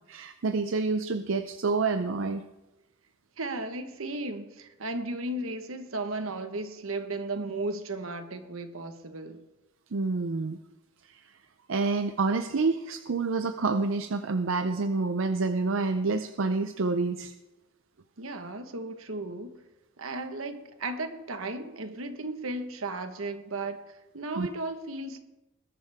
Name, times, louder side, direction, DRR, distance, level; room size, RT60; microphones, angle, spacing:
voice 1, 0.1-2.4 9.9-10.6 11.0-11.2 11.7-17.3 24.4-24.5, right 3 dB, 70° right, 0.6 m, -28 dB
voice 2, 3.4-9.4 18.2-19.6 20.0-25.2, right 2 dB, 85° right, 1.4 m, -35 dB
20.5 x 11.0 x 3.6 m
head